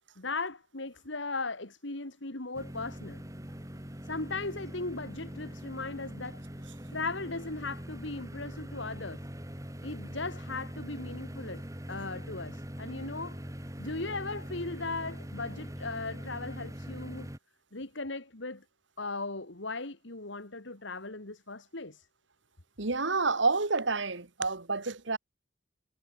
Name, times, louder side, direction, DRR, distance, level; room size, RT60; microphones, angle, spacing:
voice 1, 0.2-3.2 4.0-6.4 6.9-9.2 9.8-11.6 11.9-13.4 13.8-17.3 17.7-18.6 19.0-22.1, left 3 dB, 65° left, 2.5 m, -37 dB
sound 1, 2.5-17.4, equal, 15° right, 3.0 m, -42 dB
voice 2, 22.8-25.2, right 3 dB, 65° right, 1.9 m, -29 dB
head